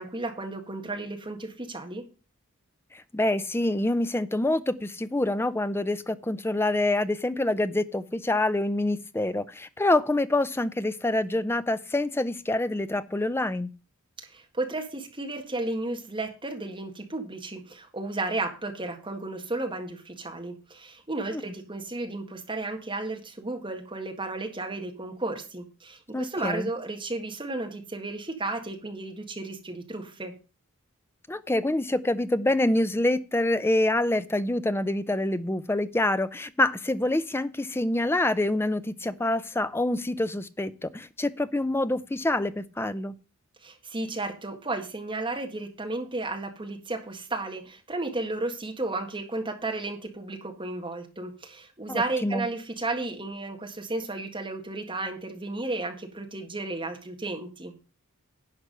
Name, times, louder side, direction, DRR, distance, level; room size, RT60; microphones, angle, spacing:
voice 1, 0.0-2.0 14.2-30.3 43.6-57.7, right 2 dB, 20° right, 3 dB, 1.7 m, -33 dB
voice 2, 2.9-13.7 21.3-21.4 26.1-26.7 31.3-43.1 51.9-52.5, left 1 dB, 10° left, 13 dB, 0.4 m, -26 dB
11.0 x 4.7 x 6.7 m, 0.34 s
head